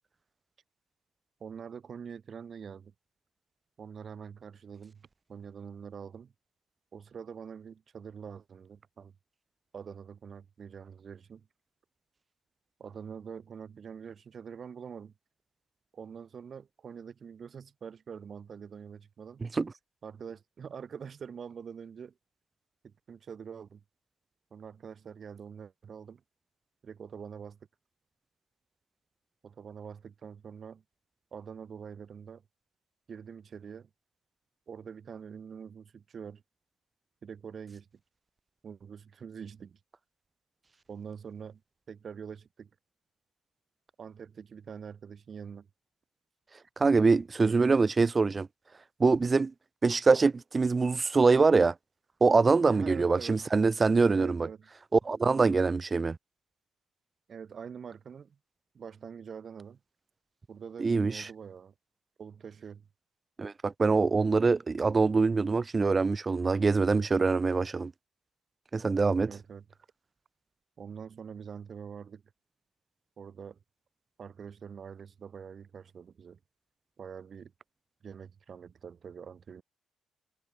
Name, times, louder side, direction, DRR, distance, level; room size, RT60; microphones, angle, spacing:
voice 1, 1.4-2.9 3.8-6.3 6.9-9.1 9.7-11.5 12.8-15.1 15.9-19.4 20.0-22.1 22.8-23.8 24.5-26.2 26.8-27.6 29.4-30.8 31.3-32.4 33.1-33.9 34.7-36.4 37.2-37.9 38.6-39.8 40.9-41.6 41.9-42.7 44.0-45.7 47.4-47.7 52.7-53.4 54.1-54.7 57.3-58.4 58.7-59.8 60.5-61.7 62.2-62.9 69.2-69.6 70.8-72.2 73.2-73.6 74.2-76.4 77.0-77.5 78.0-79.6, right 7 dB, 50° right, 1.6 m, -45 dB
voice 2, 19.4-19.7 46.8-48.5 49.0-49.5 49.8-51.7 52.2-54.5 54.9-56.2 60.8-61.3 63.4-67.9 68.7-69.3, right 4 dB, 30° right, 0.4 m, -24 dB
cardioid pair, 90°, 0 cm